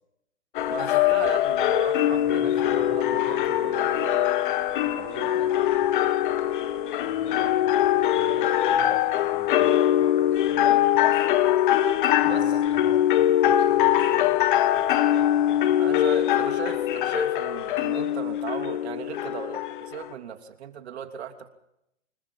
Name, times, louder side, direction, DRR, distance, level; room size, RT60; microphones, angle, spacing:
sound 1, 0.5-20.1, left 12 dB, 40° left, 1.7 m, -22 dB
voice 1, 0.7-4.1 10.6-11.3 12.3-12.4 15.7-21.5, right 9 dB, 60° right, 6 dB, 3.1 m, -37 dB
sound 2, 2.0-10.4 11.2-11.4 11.7-11.8, right 9 dB, 20° right, 4.6 m, -44 dB
voice 2, 4.8-5.9 7.0-10.8 12.2-14.4, left 4 dB, 15° left, 3 dB, 3.8 m, -43 dB
29.0 x 21.0 x 5.5 m, 0.83 s
hypercardioid pair, 145°, 37 cm